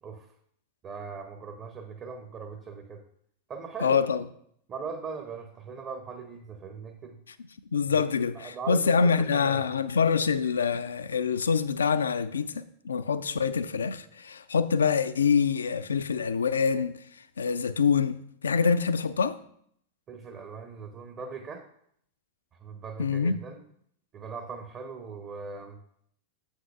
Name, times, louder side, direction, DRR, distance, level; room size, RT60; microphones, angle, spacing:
voice 1, 0.8-3.0 3.5-4.1 4.7-7.2 8.0-8.1 8.3-9.7 20.1-21.7 22.6-23.6 24.1-25.8, right 5 dB, 30° right, 0.7 m, -40 dB
voice 2, 3.8-4.2 7.7-19.4 23.0-23.4, left 6 dB, 70° left, 0.3 m, -25 dB
8.1 x 7.5 x 2.3 m
figure-of-eight pair, 90°, 0 cm